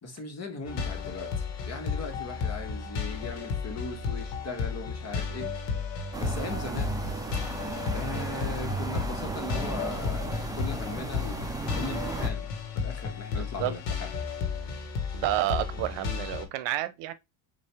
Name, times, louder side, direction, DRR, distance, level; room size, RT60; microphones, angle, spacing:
voice 1, 0.0-5.5 6.2-7.0 7.9-11.5 11.7-14.1, left 2 dB, 35° left, 1.4 m, -39 dB
sound 1, 0.6-16.4, left 5 dB, 65° left, 1.3 m, -33 dB
sound 2, 6.1-12.3, right 3 dB, 10° right, 0.6 m, -35 dB
voice 2, 13.3-13.7 15.1-17.1, right 14 dB, 65° right, 0.8 m, -30 dB
5.4 x 2.7 x 3.3 m
supercardioid pair, 95°, 46 cm